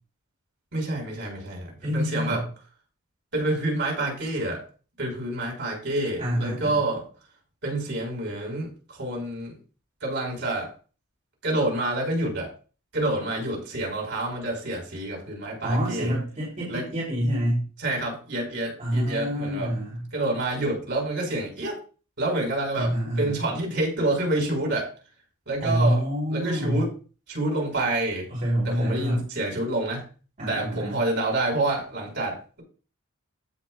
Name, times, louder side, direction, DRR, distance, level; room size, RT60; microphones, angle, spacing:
voice 1, 0.7-2.5 3.3-4.6 5.0-7.0 7.6-9.5 10.0-10.7 11.4-12.5 12.9-16.2 16.7-16.9 17.8-19.7 20.1-21.8 22.2-24.9 25.5-26.0 26.3-26.9 27.3-28.3 28.6-30.0 30.5-32.6, right 2 dB, 55° right, -1 dB, 4.5 m, -28 dB
voice 2, 1.8-2.4 6.2-6.8 15.6-17.7 18.8-20.0 22.8-23.4 25.6-26.8 28.3-29.2 30.4-31.0, equal, 40° right, -5 dB, 3.2 m, -26 dB
15.5 x 6.0 x 2.3 m, 0.37 s
head